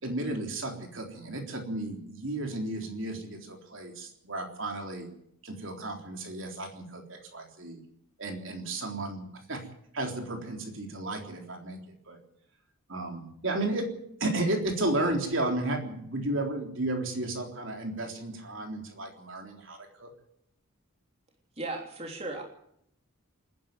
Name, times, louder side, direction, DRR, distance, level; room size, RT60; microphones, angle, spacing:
voice 1, 0.0-5.1 5.4-7.8 8.2-9.7 9.9-12.2 12.9-20.1, right 2 dB, 60° right, 3 dB, 3.7 m, -33 dB
voice 2, 21.6-22.4, right 2 dB, 30° right, 1 dB, 3.3 m, -36 dB
27.5 x 10.5 x 9.3 m, 0.72 s
head